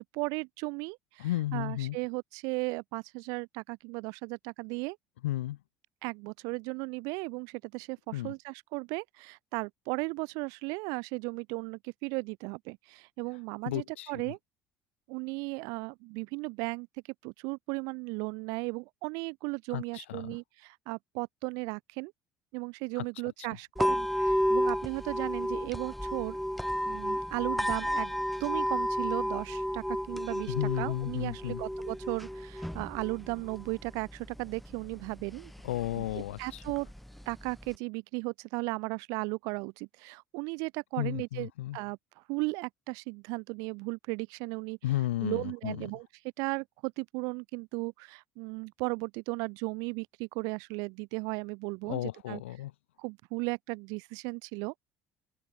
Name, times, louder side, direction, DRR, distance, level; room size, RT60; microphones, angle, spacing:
voice 1, 0.0-5.0 6.0-14.4 15.1-16.9 17.2-22.1 22.5-26.4 26.9-35.5 35.9-36.9 37.3-44.8 45.2-46.1 46.4-52.4 53.0-54.7, right 30 dB, 65° right, 3.7 m, -36 dB
voice 2, 1.2-2.0 5.2-5.6 8.1-8.3 13.7-14.1 19.7-20.3 30.5-31.6 35.6-36.4 41.0-41.8 44.8-45.8 51.9-52.7, left 15 dB, 75° left, 0.7 m, -33 dB
sound 1, 23.8-37.8, equal, ahead, 0.7 m, -33 dB
open air
figure-of-eight pair, 55°, 6 cm